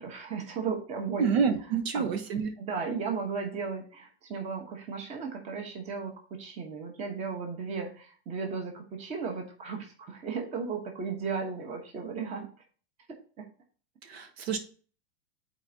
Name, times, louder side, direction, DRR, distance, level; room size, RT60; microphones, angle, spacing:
voice 1, 0.0-1.3 1.9-2.2 2.6-12.5, right 5 dB, 20° right, 3 dB, 1.1 m, -35 dB
voice 2, 1.2-2.5 14.0-14.6, right 6 dB, 65° right, 7 dB, 1.3 m, -28 dB
11.0 x 4.4 x 2.8 m, 0.40 s
supercardioid pair, 165°, 33 cm